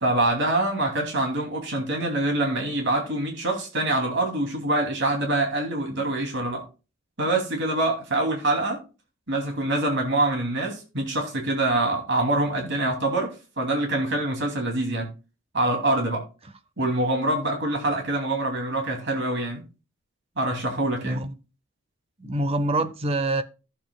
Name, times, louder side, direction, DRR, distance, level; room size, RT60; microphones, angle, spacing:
voice 1, 0.0-6.6 7.2-8.8 9.3-13.3 13.6-15.1 15.5-16.2 16.8-19.6 20.4-21.2, right 2 dB, 60° right, 2.8 m, -25 dB
voice 2, 21.0-21.3 22.2-23.4, right 2 dB, 30° right, 0.7 m, -25 dB
14.0 x 7.4 x 2.3 m
head